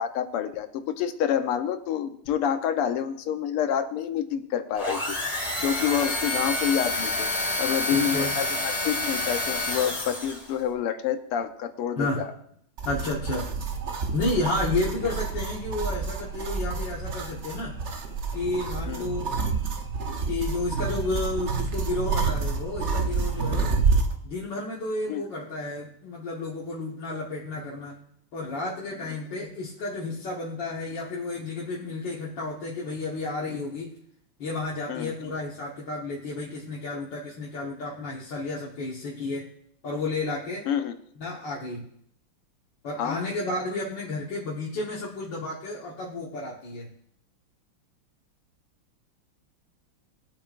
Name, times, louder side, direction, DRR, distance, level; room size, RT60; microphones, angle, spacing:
voice 1, 0.0-5.0 5.6-7.3 7.6-12.3 18.9-19.1 25.1-25.2 34.9-35.1 40.7-41.0 43.0-43.2, left 9 dB, 85° left, 8 dB, 1.8 m, -28 dB
sound 1, 4.7-10.6, left 2 dB, 15° left, 1.8 m, -28 dB
voice 2, 7.9-8.4 12.0-12.2 12.8-13.5 14.1-17.7 18.3-19.3 20.3-23.7 24.2-28.0 28.3-33.9 34.4-39.5 39.8-40.7 41.2-41.8 42.8-46.9, left 2 dB, 60° left, -5 dB, 2.1 m, -31 dB
sound 2, 12.8-24.1, right 4 dB, 50° right, 0.8 m, -28 dB
22.5 x 8.7 x 2.5 m, 0.71 s
omnidirectional pair, 2.4 m